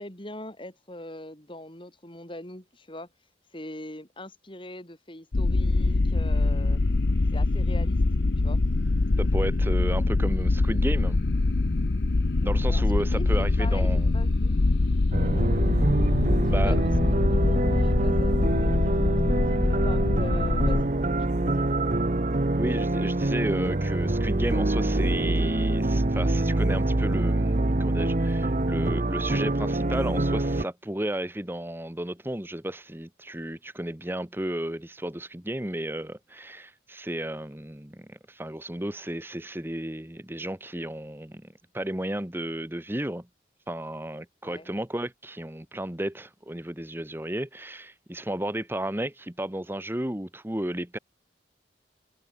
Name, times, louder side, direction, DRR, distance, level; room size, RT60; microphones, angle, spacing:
voice 1, 0.0-3.1 3.5-6.8 7.3-8.0 8.4-8.6 12.7-13.3 13.6-14.6 16.4-18.8 19.5-21.7 44.4-44.7, left 1 dB, 30° left, 4.8 m, -41 dB
sound 1, 5.3-20.8, left 2 dB, 65° left, 0.7 m, -24 dB
voice 2, 9.2-11.2 12.4-14.1 16.5-16.8 22.5-43.3 43.7-51.0, right 1 dB, 10° right, 1.2 m, -33 dB
sound 2, 15.1-30.6, right 2 dB, 45° right, 0.9 m, -25 dB
head